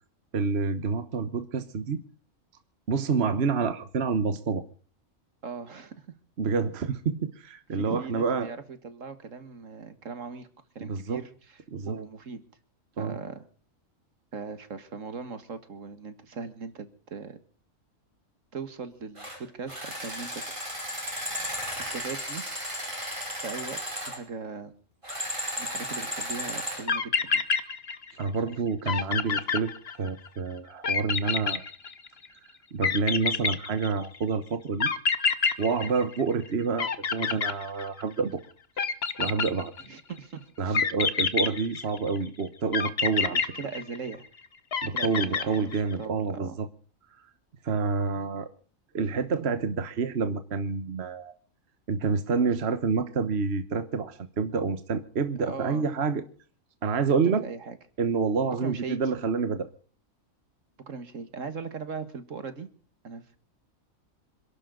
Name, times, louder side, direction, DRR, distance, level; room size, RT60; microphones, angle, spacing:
voice 1, 0.3-2.0 2.9-4.6 6.4-8.5 10.8-11.2 11.7-12.0 13.0-13.2 25.3-25.4 28.2-31.6 32.7-34.9 35.6-38.4 39.2-39.7 40.6-43.4 44.8-46.7 47.6-48.5 48.9-51.3 51.9-56.2 56.8-57.4 58.0-59.7, right 5 dB, 50° right, 10 dB, 1.4 m, -28 dB
voice 2, 5.4-6.1 7.7-10.5 10.8-11.6 11.9-12.4 13.0-13.4 14.3-17.4 18.5-20.9 21.8-22.4 23.4-24.7 25.6-27.5 39.9-40.9 43.3-44.3 44.9-46.6 55.4-55.9 57.2-57.8 58.6-59.0 60.9-62.7 63.0-63.4, right 5 dB, 70° right, 11 dB, 2.0 m, -39 dB
sound 1, 19.2-19.4 19.7-24.2 25.0-26.9, equal, 20° right, 5.5 m, -34 dB
sound 2, 26.6-26.7 26.9-28.2 28.5-28.6 28.9-30.3 30.8-32.3 32.8-34.2 34.8-36.5 36.8-38.2 38.8-40.0 40.7-42.2 42.7-44.3 44.7-45.9, left 5 dB, 50° left, 1.3 m, -27 dB
27.0 x 12.0 x 3.9 m, 0.44 s
omnidirectional pair, 1.4 m